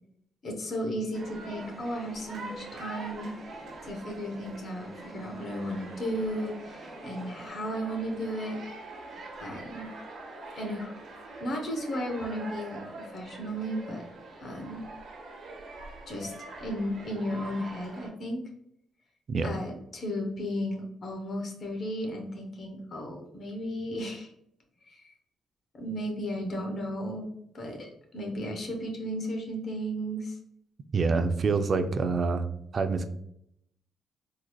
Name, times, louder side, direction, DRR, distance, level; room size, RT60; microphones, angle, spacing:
voice 1, 0.4-8.6 9.4-9.9 10.6-10.9 11.4-14.0 14.4-14.8 16.1-16.3 16.6-18.4 19.4-24.3 24.9-25.1 25.7-30.4, equal, 50° left, 2 dB, 0.9 m, -34 dB
sound 1, 1.1-18.1, right 2 dB, 60° right, 1.3 m, -44 dB
sound 2, 1.2-7.5, right 1 dB, 30° right, 1.0 m, -49 dB
voice 2, 30.9-32.5 32.7-33.1, right 4 dB, 45° right, 8 dB, 0.4 m, -26 dB
3.8 x 3.1 x 2.3 m, 0.73 s
cardioid pair, 90°, 0 cm